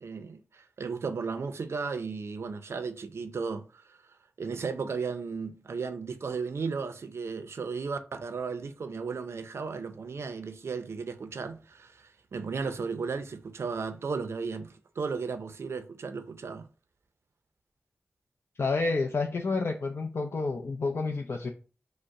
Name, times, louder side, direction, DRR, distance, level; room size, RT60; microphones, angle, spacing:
voice 1, 0.0-3.8 4.4-16.7, right 5 dB, 80° right, 0.5 m, -35 dB
voice 2, 18.6-21.5, left 3 dB, 65° left, 0.5 m, -29 dB
5.1 x 2.1 x 4.7 m
cardioid pair, 45°, 4 cm